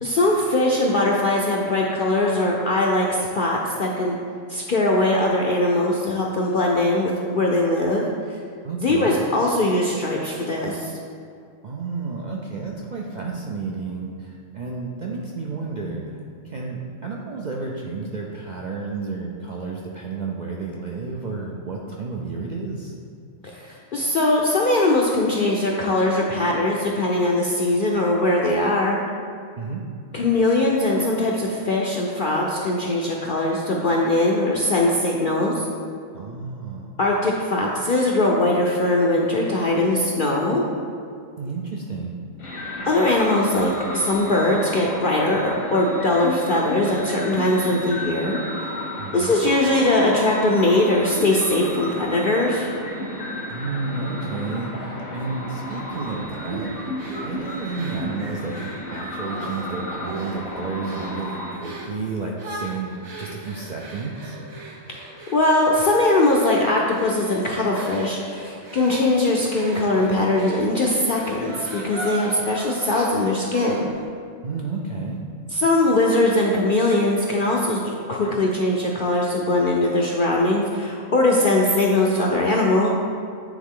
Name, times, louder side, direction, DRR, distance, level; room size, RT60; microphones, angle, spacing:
voice 1, 0.0-4.2 4.5-8.0 8.3-8.4 8.8-10.9 23.4-29.0 30.1-35.6 37.0-40.7 42.8-48.4 49.1-52.7 64.9-65.0 65.3-73.9 75.5-82.9, left 2 dB, 55° left, -2 dB, 0.6 m, -21 dB
voice 2, 8.6-9.1 11.6-16.2 16.4-22.9 29.6-29.9 36.1-36.9 41.4-42.2 49.0-49.4 53.5-56.9 57.2-62.9 63.2-64.4 74.4-75.2, right 4 dB, 65° right, -2 dB, 0.4 m, -31 dB
sound 1, 42.4-61.6, equal, 85° left, 1.5 m, -32 dB
sound 2, 57.0-59.6 60.0-60.5 60.8-61.2 61.6-62.0 62.4-74.1, right 2 dB, 80° right, 1.5 m, -38 dB
9.3 x 3.7 x 3.7 m, 2.3 s
omnidirectional pair, 1.4 m